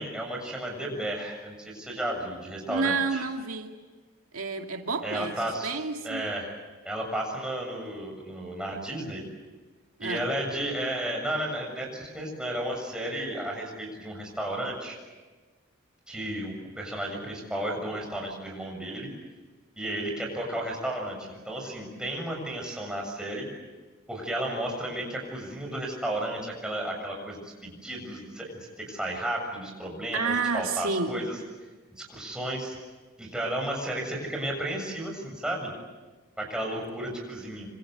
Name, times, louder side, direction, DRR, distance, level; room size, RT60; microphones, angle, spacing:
voice 1, 0.0-3.2 5.0-5.7 6.0-6.5 6.8-9.2 10.0-14.9 16.1-19.1 19.8-23.5 24.1-31.4 32.0-32.8 33.2-35.7 36.4-37.7, right 1 dB, 5° right, 0 dB, 7.2 m, -33 dB
voice 2, 2.7-3.7 4.3-5.3 5.6-6.2 10.0-10.3 30.1-31.1, right 4 dB, 85° right, 3 dB, 2.3 m, -29 dB
27.0 x 26.5 x 8.0 m, 1.3 s
head